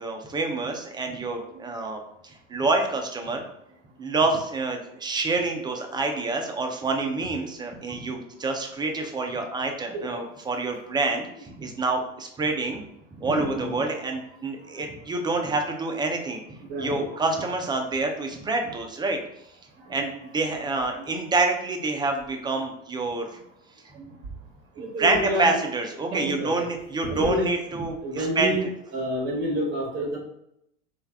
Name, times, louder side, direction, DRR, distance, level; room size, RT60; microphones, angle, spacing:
voice 1, 0.0-3.4 4.0-12.8 13.2-16.4 16.8-19.2 19.9-23.3 25.0-28.6, right 3 dB, 10° right, 4 dB, 0.3 m, -27 dB
voice 2, 13.3-13.8 16.7-17.1 19.9-20.0 23.9-24.0 24.8-25.6 26.1-26.5 27.1-27.5 28.0-28.7 28.9-30.2, equal, 30° right, -3 dB, 1.0 m, -28 dB
3.1 x 2.4 x 3.4 m, 0.78 s
hypercardioid pair, 90°, 37 cm